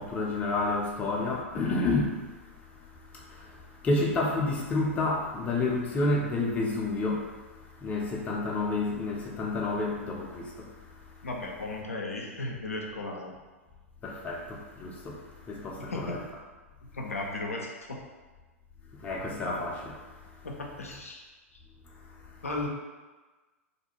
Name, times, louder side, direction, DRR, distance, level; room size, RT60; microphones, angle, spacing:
voice 1, 0.0-2.1 3.8-7.3 7.8-10.6 14.0-15.1 15.5-16.2 19.0-19.9, left 2 dB, 20° left, -3 dB, 0.5 m, -29 dB
voice 2, 11.2-13.3 15.8-16.2 16.9-18.0 20.4-21.3 22.4-22.7, left 2 dB, 80° left, 0 dB, 0.4 m, -35 dB
2.5 x 2.2 x 2.9 m, 1.3 s
figure-of-eight pair, 100°, 8 cm